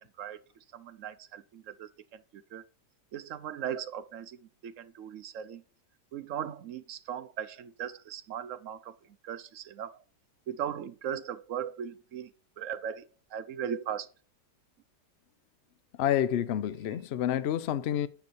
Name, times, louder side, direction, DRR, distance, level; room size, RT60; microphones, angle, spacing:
voice 1, 0.7-1.9 2.5-2.6 3.1-4.4 4.6-5.6 6.1-8.9 9.2-9.9 10.5-12.3 12.6-13.1 13.3-14.1, right 9 dB, 65° right, 0.8 m, -38 dB
voice 2, 16.0-18.1, left 10 dB, 80° left, 0.5 m, -28 dB
9.6 x 7.1 x 4.2 m
omnidirectional pair, 1.8 m